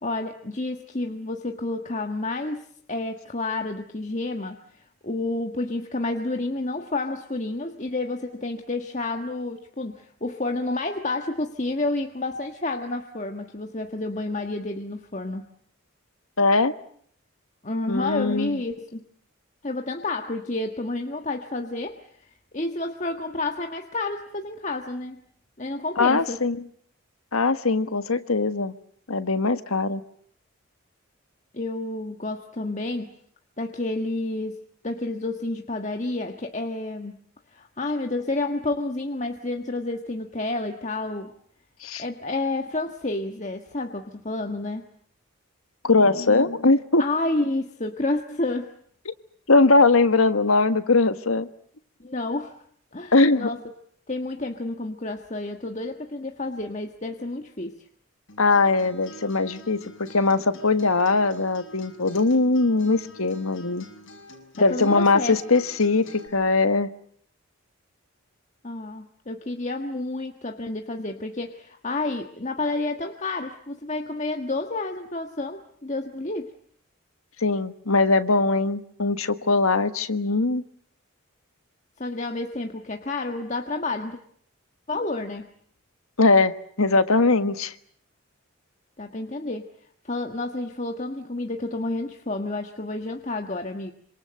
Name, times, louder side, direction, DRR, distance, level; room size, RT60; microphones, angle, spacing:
voice 1, 0.0-15.5 17.6-19.1 19.6-22.0 22.5-25.2 25.6-26.4 31.5-33.1 33.6-34.6 34.8-37.2 37.5-41.3 42.0-44.9 47.0-48.7 52.0-52.6 52.9-53.6 54.1-57.7 64.6-65.4 68.6-76.5 82.0-84.2 84.9-85.5 89.0-89.7 90.0-93.9, left 2 dB, 35° left, 4 dB, 1.6 m, -30 dB
voice 2, 16.4-16.7 17.9-18.6 26.0-26.6 27.3-28.7 29.1-30.0 41.8-42.0 45.8-47.0 49.1-49.2 49.5-51.5 53.1-53.5 58.4-63.8 64.6-66.9 77.4-80.6 86.2-87.7, left 3 dB, 80° left, 10 dB, 1.5 m, -21 dB
Acoustic guitar, 58.3-66.3, left 1 dB, 60° left, 7.1 m, -47 dB
27.0 x 26.5 x 7.8 m, 0.62 s
head